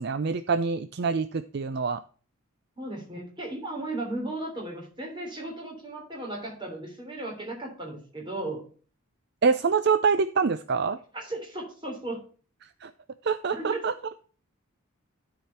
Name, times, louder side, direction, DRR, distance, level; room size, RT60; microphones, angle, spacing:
voice 1, 0.0-2.0 9.4-11.0 12.8-12.9 13.2-13.9, right 5 dB, 50° right, 11 dB, 0.4 m, -25 dB
voice 2, 2.8-8.6 11.1-12.2 13.5-13.8, right 2 dB, 20° right, -1 dB, 3.4 m, -35 dB
12.5 x 5.0 x 4.2 m, 0.40 s
head